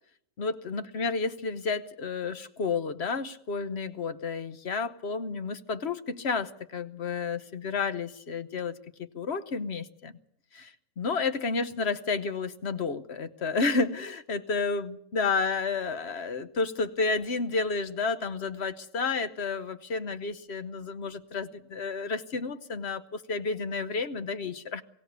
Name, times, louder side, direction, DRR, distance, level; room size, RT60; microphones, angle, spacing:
voice 1, 0.4-10.1 10.5-24.8, left 4 dB, 50° left, 12 dB, 1.2 m, -31 dB
22.5 x 17.0 x 8.1 m, 0.67 s
omnidirectional pair, 1.5 m